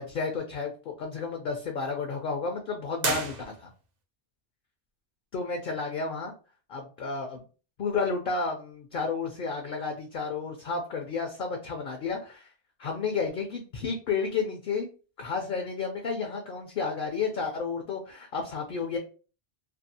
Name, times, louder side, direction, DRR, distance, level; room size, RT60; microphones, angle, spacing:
voice 1, 0.0-3.7 5.3-6.3 6.7-7.4 7.8-12.5 12.8-14.9 15.2-19.0, left 4 dB, 60° left, 3 dB, 0.6 m, -32 dB
sound 1, 3.0-4.0, right 4 dB, 55° right, 0.5 m, -32 dB
2.6 x 2.3 x 2.6 m, 0.35 s
omnidirectional pair, 1.1 m